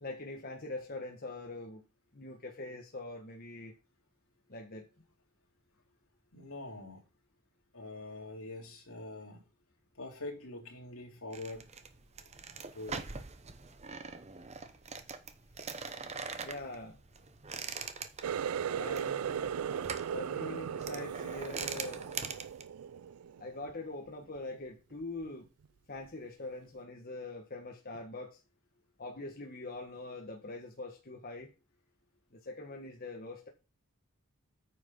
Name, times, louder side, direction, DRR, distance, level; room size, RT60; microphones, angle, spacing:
voice 1, 0.0-1.8 2.1-3.7 4.5-4.9 16.4-17.0 18.7-19.5 20.1-22.0 23.4-25.5 25.9-28.4 29.0-31.5 32.3-33.5, left 2 dB, 45° left, 1 dB, 1.3 m, -43 dB
voice 2, 6.3-7.0 7.7-9.4 9.9-11.8 12.2-12.3 12.7-13.0, left 2 dB, 70° left, 0 dB, 3.2 m, -44 dB
sound 1, 11.3-22.6, right 5 dB, 30° right, 0.8 m, -43 dB
Water tap faucet, 18.2-23.7 24.1-24.6 25.0-25.3 26.1-26.2, right 8 dB, 85° right, 0.4 m, -37 dB
9.2 x 5.9 x 5.4 m, 0.30 s
head